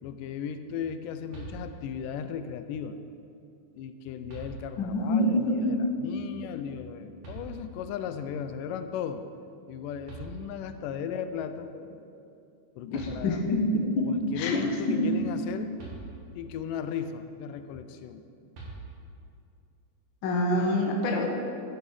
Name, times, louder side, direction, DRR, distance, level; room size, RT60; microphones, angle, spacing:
voice 1, 0.0-3.0 3.7-9.3 9.7-11.7 12.8-13.5 14.1-15.8 16.3-18.2, left 8 dB, 85° left, 9 dB, 2.1 m, -36 dB
sound 1, 1.3-2.1 3.6-3.7 4.3-5.0 7.2-8.0 9.7-9.8 10.1-10.9 12.6-12.7 12.9-13.7 15.8-16.6 18.5-19.3, right 3 dB, 70° right, 3.9 m, -44 dB
voice 2, 4.8-5.8 12.9-14.6 14.9-15.1 20.2-21.3, left 1 dB, 55° left, 1 dB, 1.3 m, -26 dB
13.5 x 7.6 x 4.8 m, 2.5 s
omnidirectional pair, 3.8 m